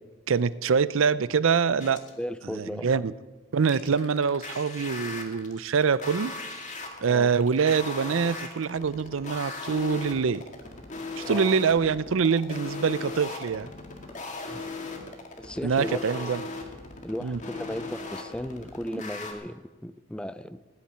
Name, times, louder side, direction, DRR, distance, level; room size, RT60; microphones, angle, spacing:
voice 1, 0.3-2.0 2.6-3.1 3.5-6.3 7.0-10.4 11.2-13.7 15.6-16.4 17.2-17.4, right 6 dB, 75° right, 18 dB, 0.5 m, -25 dB
sound 1, 1.8-2.2 3.7-19.3, left 3 dB, 35° left, 1.9 m, -38 dB
voice 2, 2.2-3.1 7.0-7.3 11.2-11.6 14.5-14.6 15.4-16.3 17.0-20.6, equal, 5° left, 12 dB, 0.5 m, -36 dB
17.5 x 7.3 x 9.4 m, 1.2 s
head